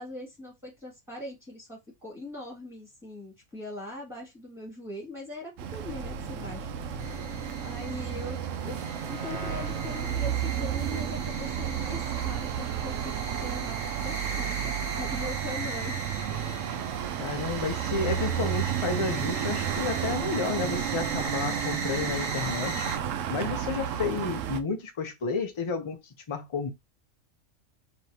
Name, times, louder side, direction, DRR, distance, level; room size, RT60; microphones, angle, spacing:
voice 1, 0.0-6.7 7.6-8.8 9.0-16.0, left 2 dB, ahead, 2.2 m, -41 dB
sound 1, 5.6-24.6, right 9 dB, 85° right, 1.0 m, -32 dB
sound 2, 7.0-23.0, right 3 dB, 60° right, 2.1 m, -39 dB
voice 2, 17.2-22.9 23.3-26.0 26.3-26.7, left 4 dB, 30° left, 0.6 m, -31 dB
4.8 x 3.0 x 2.8 m
omnidirectional pair, 1.3 m